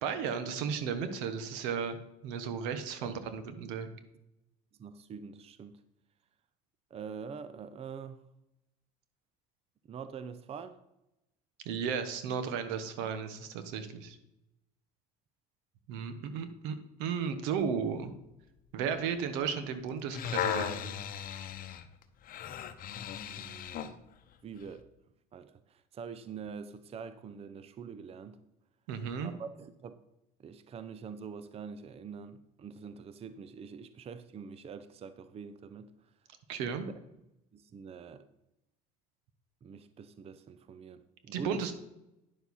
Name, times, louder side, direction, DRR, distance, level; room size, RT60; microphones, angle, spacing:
voice 1, 0.0-2.0 2.2-3.9 11.6-14.2 15.9-18.1 18.7-21.0 28.9-29.3 36.5-36.9 41.3-41.7, right 6 dB, 75° right, 10 dB, 1.2 m, -34 dB
voice 2, 3.0-3.4 4.8-5.8 6.9-8.2 9.9-10.8 23.3-24.0 24.4-24.9 25.3-28.4 29.2-30.0 30.4-35.9 36.5-37.0 37.5-38.3 39.6-41.7, right 6 dB, 30° right, 12 dB, 0.6 m, -45 dB
sound 1, 19.9-24.0 24.6-24.7, left 9 dB, 50° left, 0.9 m, -36 dB
10.0 x 7.1 x 4.2 m, 0.89 s
supercardioid pair, 90°, 19 cm